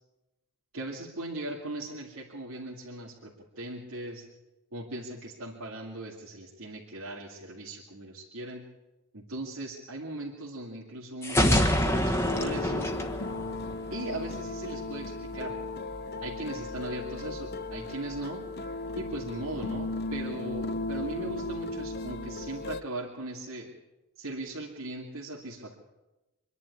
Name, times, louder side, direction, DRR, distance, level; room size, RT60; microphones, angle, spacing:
voice 1, 0.7-4.2 4.7-8.6 9.1-13.0 13.9-15.6 16.2-18.5 19.0-23.7 24.2-25.8, right 1 dB, 80° right, -3 dB, 2.4 m, -38 dB
sound 1, 11.2-14.1, equal, 10° left, 1.3 m, -26 dB
sound 2, 12.2-22.8, left 2 dB, 50° left, 0.8 m, -36 dB
25.5 x 11.0 x 9.5 m, 1.0 s
head